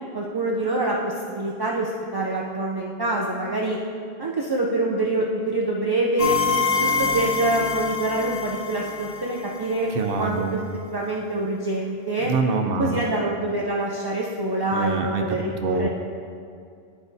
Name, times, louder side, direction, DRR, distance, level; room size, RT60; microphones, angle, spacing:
voice 1, 0.1-3.8 4.2-6.4 6.8-9.9 10.2-10.6 10.9-12.3 12.8-15.9, right 2 dB, 35° right, -2 dB, 0.4 m, -25 dB
sound 1, 6.2-9.9, left 4 dB, 60° left, 0.9 m, -26 dB
voice 2, 9.9-10.6 12.2-13.0 14.7-15.2 15.6-15.9, right 4 dB, 65° right, 5 dB, 0.8 m, -25 dB
12.0 x 4.8 x 2.7 m, 2.4 s
omnidirectional pair, 1.0 m